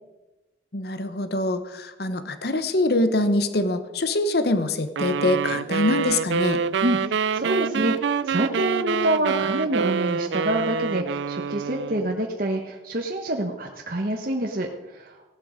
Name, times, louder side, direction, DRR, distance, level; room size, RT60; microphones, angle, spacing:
voice 1, 0.7-6.6, left 2 dB, 60° left, 11 dB, 1.0 m, -24 dB
sound 1, 5.0-12.1, right 6 dB, 75° right, 0.4 m, -26 dB
voice 2, 6.8-15.2, right 1 dB, 50° right, 1 dB, 1.2 m, -27 dB
16.5 x 11.5 x 5.1 m, 1.1 s
head